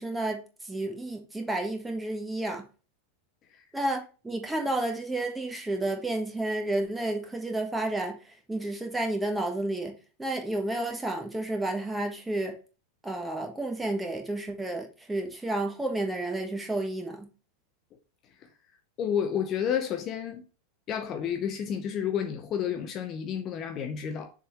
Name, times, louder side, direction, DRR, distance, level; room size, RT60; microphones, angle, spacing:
voice 1, 0.0-2.6 3.7-8.2 8.5-12.6 13.0-17.3, right 2 dB, 5° right, 1.4 m, -31 dB
voice 2, 19.0-20.4 20.9-24.3, left 8 dB, 30° left, 0.6 m, -30 dB
6.8 x 3.7 x 4.5 m
figure-of-eight pair, 90°, 0 cm